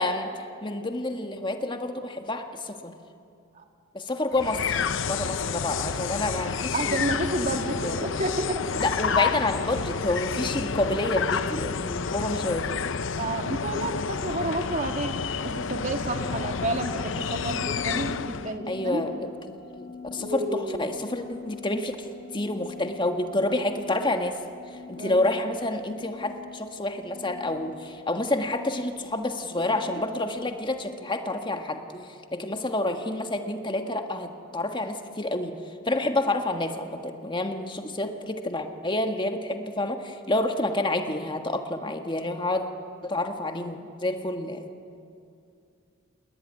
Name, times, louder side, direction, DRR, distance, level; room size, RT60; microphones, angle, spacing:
voice 1, 0.0-2.9 3.9-4.8 5.1-7.0 7.4-8.1 8.8-12.7 16.4-16.7 18.7-22.0 22.3-24.4 24.7-35.5 35.8-42.6 43.0-44.7, left 2 dB, 20° left, 5 dB, 1.6 m, -29 dB
sound 1, 4.3-18.6, left 6 dB, 60° left, 0.7 m, -29 dB
voice 2, 6.7-8.6 13.2-15.1 15.4-19.0 20.2-21.0 25.0-25.2, right 1 dB, 35° right, 4 dB, 2.2 m, -30 dB
sound 2, 16.0-31.0, left 5 dB, 40° left, 1.4 m, -45 dB
28.0 x 20.5 x 9.9 m, 2.5 s
head